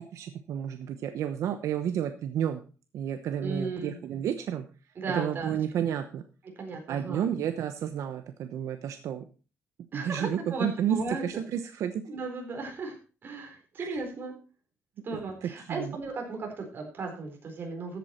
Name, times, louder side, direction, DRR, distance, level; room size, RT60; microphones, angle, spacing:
voice 1, 0.1-2.6 2.9-4.6 5.1-6.2 6.9-9.2 9.9-11.0 11.2-11.9 13.8-14.0 15.1-16.0, right 9 dB, 85° right, 8 dB, 1.0 m, -31 dB
voice 2, 3.4-3.9 5.0-5.6 6.6-7.3 9.9-11.4 12.0-14.3 15.0-18.0, right 3 dB, 45° right, 3 dB, 4.1 m, -36 dB
14.0 x 8.4 x 4.3 m, 0.35 s
cardioid pair, 150°, 5 cm